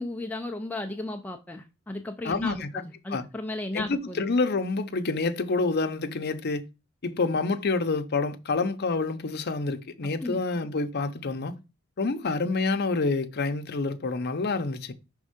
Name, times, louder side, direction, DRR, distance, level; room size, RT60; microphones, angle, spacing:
voice 1, 0.0-4.3 10.2-10.6, left 2 dB, 5° left, 0.3 m, -35 dB
voice 2, 2.2-2.7 3.1-3.2 3.7-6.6 7.0-11.6 12.0-14.9, left 3 dB, 50° left, 0.7 m, -27 dB
5.4 x 3.5 x 5.0 m
head